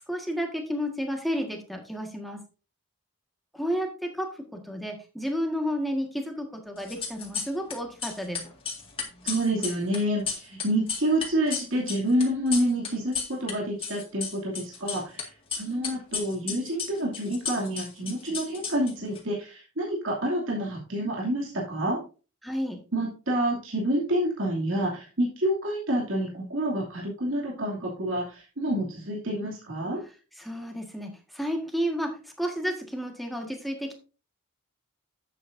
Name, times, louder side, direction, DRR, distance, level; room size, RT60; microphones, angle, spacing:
voice 1, 0.1-2.4 3.5-8.4 22.4-22.8 30.4-33.9, equal, ahead, 2 dB, 1.7 m, -31 dB
sound 1, 6.8-7.7 8.0-13.5 13.8-15.2 15.5-19.2, left 6 dB, 25° left, 2.0 m, -33 dB
voice 2, 9.2-22.0 22.9-30.0, right 1 dB, 65° right, -3 dB, 2.7 m, -28 dB
11.0 x 8.3 x 2.7 m, 0.34 s
head